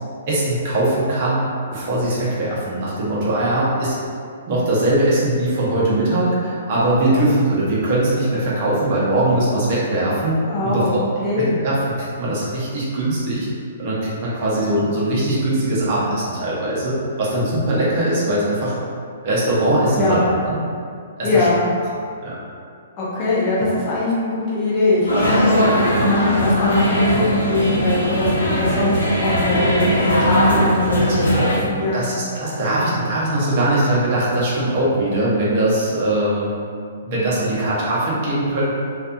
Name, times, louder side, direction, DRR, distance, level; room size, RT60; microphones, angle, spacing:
voice 1, 0.3-1.4 1.7-3.9 4.5-10.4 10.6-10.8 11.4-13.5 13.8-18.7 19.2-20.6 21.2-21.5 22.2-22.4 31.0-31.2 31.9-36.5 37.0-38.7, right 1 dB, 40° right, -7 dB, 0.7 m, -21 dB
voice 2, 10.5-11.6 19.9-20.2 21.2-21.6 23.0-32.0, left 2 dB, 30° left, -8 dB, 0.7 m, -21 dB
sound 1, 25.1-31.6, equal, 75° left, 0.8 m, -19 dB
2.6 x 2.3 x 2.5 m, 2.3 s
figure-of-eight pair, 120°, 0 cm